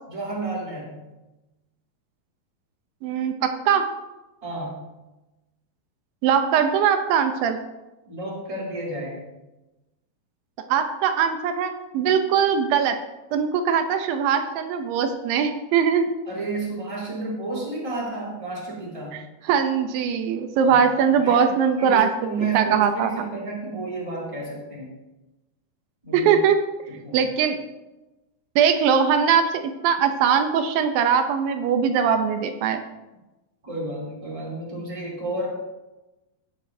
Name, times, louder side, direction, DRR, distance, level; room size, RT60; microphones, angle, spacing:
voice 1, 0.1-1.0 4.4-4.8 8.0-9.2 16.2-19.2 20.6-20.7 21.2-21.5 21.8-24.9 26.0-26.3 26.9-27.3 33.6-35.5, right 3 dB, 10° right, -5 dB, 2.8 m, -31 dB
voice 2, 3.0-3.9 6.2-7.6 10.7-13.0 13.3-16.1 19.5-22.1 22.5-23.1 26.1-26.6 27.1-27.6 28.6-32.8, right 7 dB, 85° right, 7 dB, 2.5 m, -21 dB
16.0 x 8.1 x 2.7 m, 1.0 s
omnidirectional pair, 4.0 m